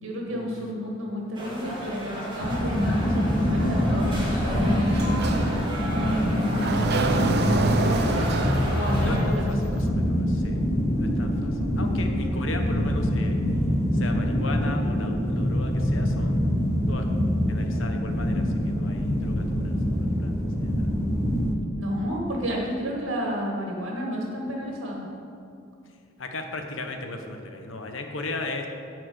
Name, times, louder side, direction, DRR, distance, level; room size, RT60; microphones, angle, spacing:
voice 1, 0.0-5.0 5.9-8.3 8.7-9.5 21.8-25.1, equal, 80° right, -1 dB, 1.7 m, -31 dB
sound 1, 1.3-9.2, equal, 25° right, 2.3 m, -34 dB
sound 2, 2.4-21.6, equal, 15° left, 0.8 m, -25 dB
Sliding door, 4.9-9.9, right 3 dB, 55° right, 0.7 m, -28 dB
voice 2, 9.0-10.6 10.9-13.4 13.9-16.5 16.9-17.0 17.5-21.0 26.2-28.7, left 2 dB, 75° left, 4 dB, 1.1 m, -36 dB
11.0 x 4.7 x 7.8 m, 2.5 s
head